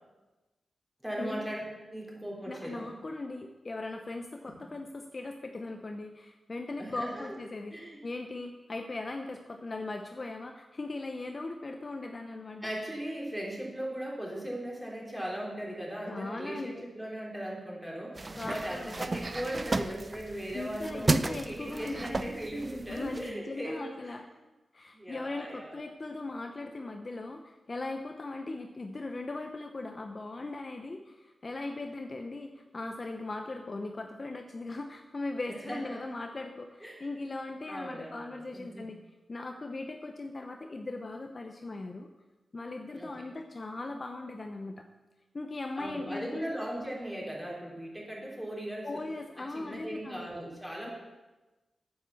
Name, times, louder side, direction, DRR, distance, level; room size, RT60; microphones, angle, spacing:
voice 1, 1.0-1.6 1.9-2.9 4.5-4.6 6.8-7.3 7.7-8.0 12.6-24.1 24.9-25.8 35.5-36.1 36.8-37.3 37.7-38.9 42.9-43.1 45.8-49.0 49.4-50.9, right 1 dB, 5° right, -3 dB, 3.6 m, -38 dB
voice 2, 2.5-12.7 16.1-16.8 18.4-19.0 20.5-22.3 22.9-24.3 24.7-39.0 39.3-42.1 42.5-44.8 45.3-46.5 48.8-50.3, left 2 dB, 35° left, 4 dB, 0.8 m, -39 dB
sound 1, 18.2-23.3, right 2 dB, 30° right, 0.5 m, -34 dB
9.2 x 8.5 x 7.1 m, 1.1 s
wide cardioid pair, 110°, 0 cm